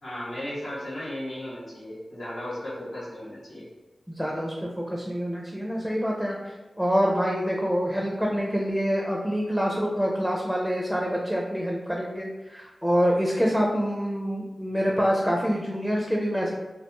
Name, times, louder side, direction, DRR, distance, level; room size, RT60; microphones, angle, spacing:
voice 1, 0.0-3.7, left 1 dB, 90° left, -7 dB, 1.0 m, -35 dB
voice 2, 4.1-6.4 6.8-16.5, equal, ahead, -2 dB, 0.4 m, -26 dB
2.4 x 2.2 x 2.9 m, 1.1 s
cardioid pair, 55°, 0 cm